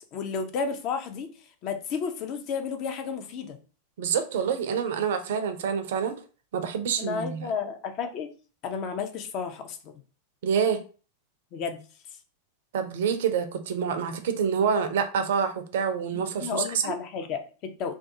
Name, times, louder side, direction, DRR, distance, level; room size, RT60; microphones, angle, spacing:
voice 1, 0.1-1.3 1.6-3.6 7.0-8.3 8.6-10.0 11.5-11.8 16.4-17.9, left 6 dB, 40° left, 7 dB, 0.4 m, -32 dB
voice 2, 4.0-6.2 6.5-7.5 10.4-10.8 12.7-16.9, right 7 dB, 55° right, 8 dB, 0.4 m, -27 dB
2.2 x 2.2 x 2.6 m, 0.37 s
figure-of-eight pair, 90°, 0 cm